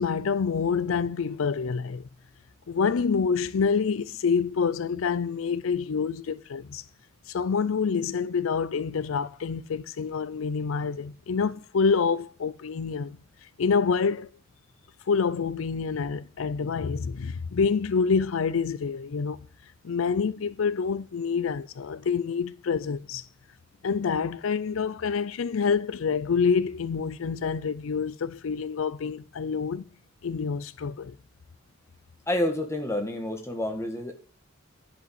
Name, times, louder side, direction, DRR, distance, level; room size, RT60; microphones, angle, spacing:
voice 1, 0.0-2.0 2.7-6.8 7.3-13.2 13.6-14.3 15.1-19.5 19.8-23.3 23.8-29.8 30.2-31.1, left 5 dB, 80° left, 0.5 m, -27 dB
voice 2, 32.3-34.1, left 1 dB, 15° left, 1.7 m, -28 dB
10.5 x 5.3 x 8.0 m
head